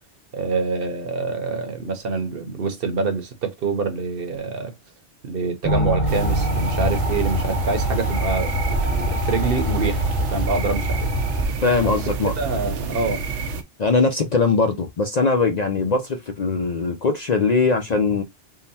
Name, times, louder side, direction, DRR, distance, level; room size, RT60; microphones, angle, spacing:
voice 1, 0.3-4.7 5.2-11.1 11.8-13.2, right 4 dB, 55° right, 1.0 m, -26 dB
sound 1, 5.6-9.2, equal, ahead, 0.7 m, -29 dB
sound 2, 5.7-11.5, equal, 30° left, 0.9 m, -25 dB
sound 3, 6.1-13.6, right 4 dB, 90° right, 1.0 m, -29 dB
voice 2, 11.6-12.3 13.8-18.2, left 4 dB, 50° left, 0.5 m, -21 dB
3.7 x 2.1 x 4.1 m
omnidirectional pair, 1.2 m